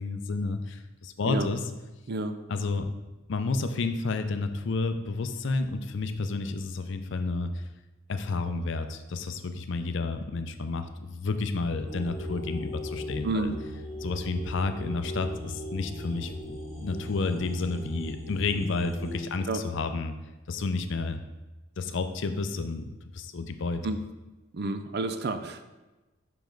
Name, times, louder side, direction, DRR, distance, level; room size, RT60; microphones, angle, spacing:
voice 1, 0.0-1.7 2.5-2.9 3.3-7.6 8.1-13.5 14.0-20.1 20.5-21.2 21.8-23.8, left 3 dB, 60° left, 8 dB, 0.5 m, -31 dB
sound 1, 11.9-19.2, equal, 15° right, 2.0 m, -38 dB
voice 2, 13.2-13.6 19.5-19.6 23.8-24.0 24.5-25.6, right 2 dB, 50° right, 9 dB, 0.5 m, -30 dB
5.8 x 5.1 x 3.8 m, 1.1 s
head